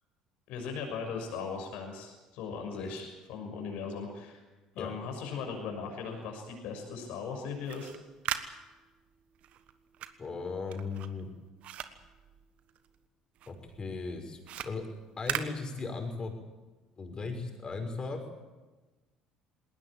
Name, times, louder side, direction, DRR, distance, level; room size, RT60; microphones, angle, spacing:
voice 1, 0.5-4.4 4.7-7.9, left 5 dB, 70° left, 4 dB, 6.4 m, -38 dB
sound 1, 7.5-13.0 13.4-16.3, right 10 dB, 60° right, 1.4 m, -40 dB
voice 2, 10.2-11.3 13.5-14.8 15.2-16.3 17.0-18.4, left 4 dB, 35° left, 5 dB, 5.7 m, -37 dB
20.0 x 18.5 x 9.0 m, 1.2 s
hypercardioid pair, 60°, 2 cm